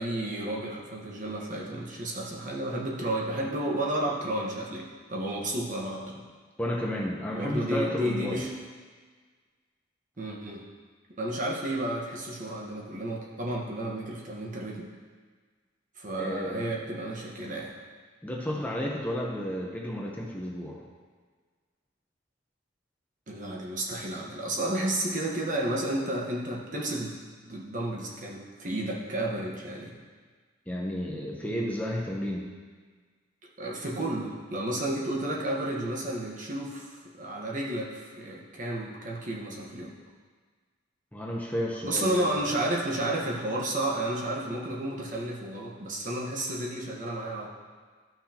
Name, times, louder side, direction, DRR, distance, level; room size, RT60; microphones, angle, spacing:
voice 1, 0.0-6.3 7.3-8.5 10.2-10.6 11.2-14.9 16.0-17.7 23.3-27.2 27.4-30.0 33.6-40.0 41.8-47.5, right 1 dB, 45° right, -2 dB, 1.3 m, -32 dB
voice 2, 6.6-8.4 16.2-16.8 18.2-20.8 30.7-32.5 41.1-42.3, equal, 10° left, -2 dB, 0.8 m, -32 dB
13.0 x 6.1 x 2.9 m, 1.5 s
head